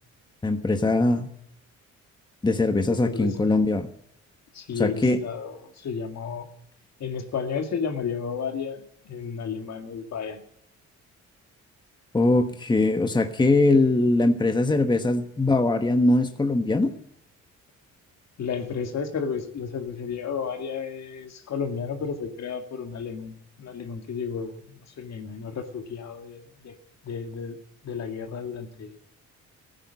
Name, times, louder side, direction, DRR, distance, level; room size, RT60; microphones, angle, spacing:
voice 1, 0.4-1.3 2.4-3.9 4.8-5.2 12.1-16.9, left 2 dB, 15° left, 1.2 m, -21 dB
voice 2, 2.9-3.5 4.5-6.5 7.0-10.4 18.4-26.7 27.0-27.6 27.8-29.0, left 6 dB, 60° left, 2.1 m, -32 dB
15.5 x 9.1 x 9.8 m
cardioid pair, 90°, 30 cm